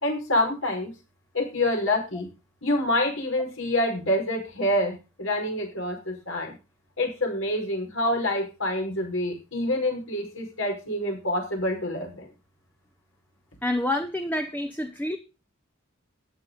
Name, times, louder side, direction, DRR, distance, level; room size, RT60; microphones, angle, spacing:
voice 1, 0.0-0.9 1.3-2.3 2.6-6.5 7.0-12.3, left 1 dB, 75° left, 2 dB, 5.5 m, -27 dB
voice 2, 13.6-15.2, left 1 dB, 10° left, 6 dB, 0.8 m, -28 dB
14.0 x 9.5 x 4.0 m, 0.30 s
head